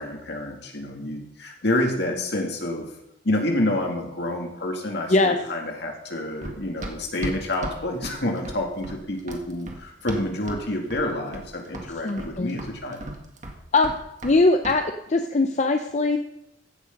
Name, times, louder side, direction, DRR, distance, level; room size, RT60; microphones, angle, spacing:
voice 1, 0.0-2.9 3.2-13.0, left 1 dB, 65° left, 2 dB, 2.3 m, -28 dB
Run, 6.4-10.6 10.9-11.5 11.7-14.4 14.6-14.8, right 1 dB, 40° right, 1.8 m, -36 dB
voice 2, 12.0-12.6 13.7-13.9 14.2-14.8 15.1-16.2, left 3 dB, 40° left, 6 dB, 0.6 m, -20 dB
15.0 x 6.6 x 5.3 m, 0.82 s
head